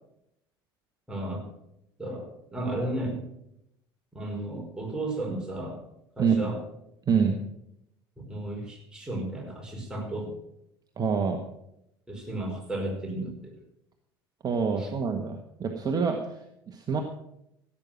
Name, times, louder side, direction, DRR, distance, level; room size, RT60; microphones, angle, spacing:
voice 1, 1.1-1.5 2.0-3.2 4.1-5.8 6.2-6.6 8.2-10.3 12.1-13.5 14.8-14.9, right 1 dB, 5° right, -1 dB, 5.2 m, -34 dB
voice 2, 7.1-7.4 11.0-11.4 14.4-16.2 16.7-17.0, right 6 dB, 30° right, 4 dB, 1.5 m, -26 dB
16.0 x 8.8 x 6.0 m, 0.80 s
figure-of-eight pair, 65°, 13 cm